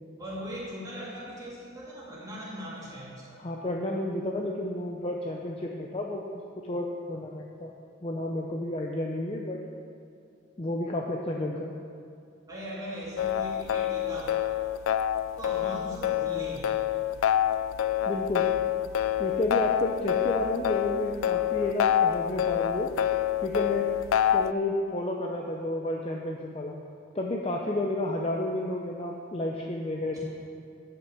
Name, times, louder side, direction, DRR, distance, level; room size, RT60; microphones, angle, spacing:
voice 1, 0.2-3.4 12.5-14.5 15.4-16.8 30.1-30.2, equal, 20° right, -7 dB, 2.4 m, -39 dB
voice 2, 3.4-6.2 6.6-7.7 8.0-9.6 10.6-11.7 18.1-18.5 19.2-22.9 23.4-23.9 24.3-26.8 27.1-30.2, left 1 dB, 30° left, 0 dB, 0.6 m, -31 dB
sound 1, 13.2-24.5, left 10 dB, 85° left, 0.3 m, -27 dB
10.5 x 5.9 x 6.8 m, 2.4 s
head